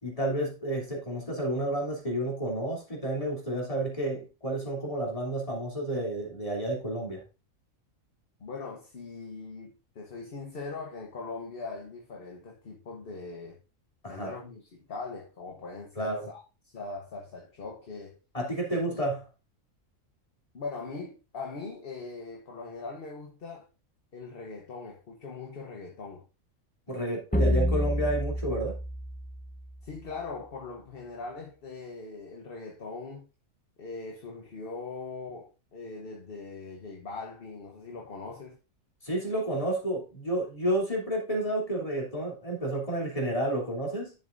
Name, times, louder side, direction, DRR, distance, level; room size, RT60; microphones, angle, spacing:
voice 1, 0.0-7.2 14.0-14.3 16.0-16.3 18.3-19.2 26.9-28.7 39.0-44.1, right 1 dB, 25° left, 3.1 m, -30 dB
voice 2, 8.4-13.6 14.1-18.2 18.7-19.0 20.5-23.7 24.1-26.2 29.8-33.3 33.8-38.6, left 4 dB, 45° left, 1.2 m, -41 dB
sound 1, 27.3-29.9, equal, 10° left, 0.5 m, -28 dB
10.5 x 7.1 x 2.6 m
omnidirectional pair, 1.4 m